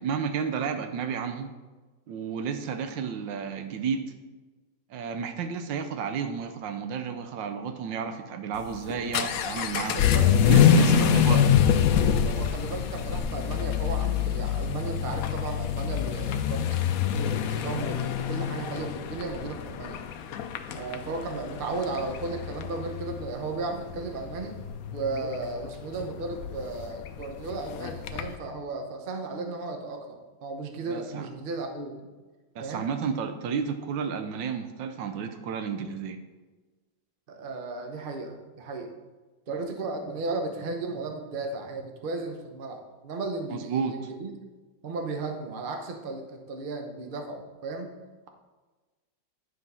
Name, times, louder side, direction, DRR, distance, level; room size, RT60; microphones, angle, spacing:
voice 1, 0.0-1.5 2.1-4.1 4.9-10.1 10.5-11.4 30.9-31.3 32.6-36.2 43.5-44.0, right 6 dB, 80° right, 8 dB, 1.4 m, -31 dB
Vehicle / Accelerating revving vroom, 8.6-28.4, left 8 dB, 75° left, 0.8 m, -26 dB
voice 2, 9.8-10.3 10.6-11.4 12.2-16.8 17.1-20.0 20.7-24.6 24.9-31.9 32.6-32.9 37.3-38.9 39.5-44.3 44.8-48.0, right 3 dB, 45° right, 4 dB, 0.7 m, -35 dB
9.8 x 4.0 x 5.4 m, 1.3 s
omnidirectional pair, 2.0 m